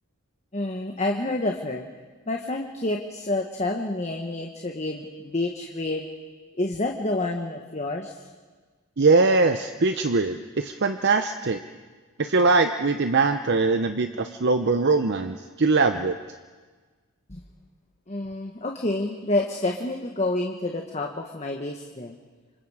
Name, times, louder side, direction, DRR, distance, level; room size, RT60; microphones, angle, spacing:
voice 1, 0.5-1.9 2.3-6.1 6.6-8.1 17.3-17.4 18.1-22.2, left 2 dB, 30° left, 2 dB, 1.3 m, -28 dB
voice 2, 9.0-11.6 12.2-16.2, right 3 dB, 50° right, 8 dB, 0.8 m, -22 dB
28.5 x 26.0 x 4.9 m, 1.4 s
head